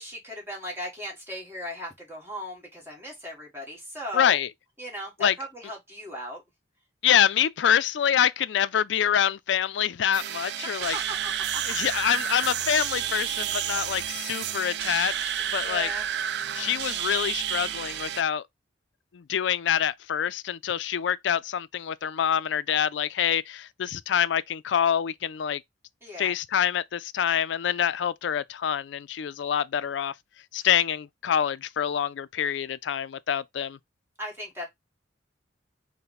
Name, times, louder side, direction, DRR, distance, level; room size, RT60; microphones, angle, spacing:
voice 1, 0.0-4.4 4.8-6.4 10.6-11.6 15.6-16.0 26.0-26.3 34.2-34.7, equal, 15° right, 1.5 m, -37 dB
voice 2, 4.1-4.5 5.2-5.3 7.0-11.0 11.7-15.9 16.5-18.4 19.1-25.6 26.2-30.1 30.5-33.8, left 9 dB, 70° left, 0.4 m, -26 dB
sound 1, 10.1-18.2, right 10 dB, 65° right, 0.4 m, -30 dB
5.5 x 2.1 x 4.0 m
head